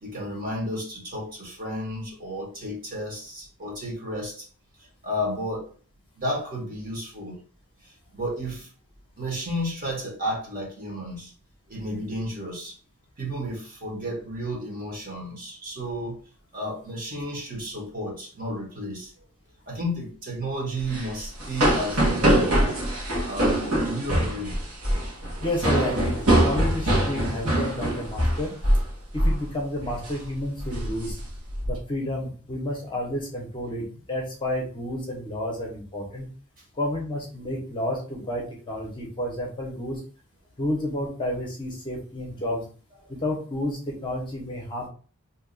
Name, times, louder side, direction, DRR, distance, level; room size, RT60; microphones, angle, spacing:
voice 1, 0.0-4.5 4.8-5.7 6.2-7.4 7.8-8.7 9.2-11.3 11.7-12.7 13.2-16.2 16.5-19.1 19.7-22.7 23.2-24.5 36.6-36.7, equal, 40° right, -1 dB, 1.0 m, -32 dB
sound 1, 20.8-28.9 29.2-29.4 29.8-30.1 30.6-31.7, right 1 dB, 80° right, 1.2 m, -23 dB
voice 2, 25.4-28.5 29.1-31.2 31.7-36.3 36.7-40.0 40.6-42.6 43.1-44.9, left 1 dB, 20° left, -1 dB, 0.7 m, -30 dB
2.7 x 2.3 x 3.8 m, 0.41 s
head